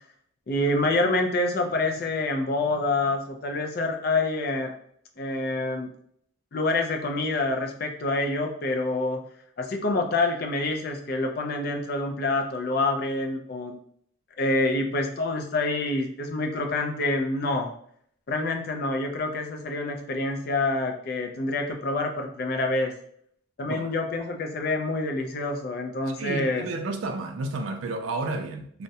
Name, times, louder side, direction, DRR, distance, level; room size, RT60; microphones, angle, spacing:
voice 1, 0.5-4.7 5.2-5.9 6.5-9.2 9.6-13.8 14.4-17.7 18.3-22.9 23.6-26.6, left 2 dB, 50° left, 0.4 m, -27 dB
voice 2, 26.2-28.8, right 2 dB, 75° right, 0.4 m, -31 dB
2.3 x 2.0 x 2.7 m
head